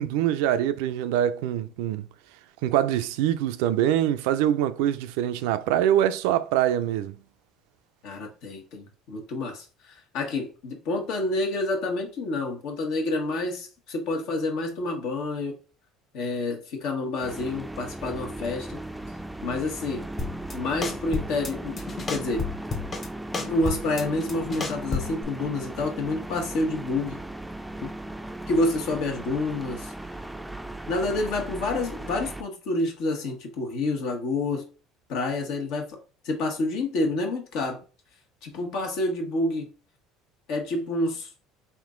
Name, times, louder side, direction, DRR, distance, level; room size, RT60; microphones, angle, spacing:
voice 1, 0.0-2.1 2.6-7.2, right 11 dB, 80° right, 0.3 m, -24 dB
voice 2, 8.0-15.5 16.1-18.8 19.4-20.0 20.5-21.8 22.1-22.5 23.5-27.2 27.8-27.9 28.5-29.9 30.9-34.6 35.1-36.0 36.2-37.8 38.4-39.7 40.5-41.3, left 2 dB, 70° left, 1.3 m, -28 dB
sound 1, 17.2-32.4, right 1 dB, 5° right, 0.4 m, -37 dB
sound 2, 20.2-20.5 20.8-21.5 21.8-23.1 23.3-25.2, left 4 dB, 30° left, 0.8 m, -31 dB
3.6 x 2.6 x 3.7 m
supercardioid pair, 95°, 0 cm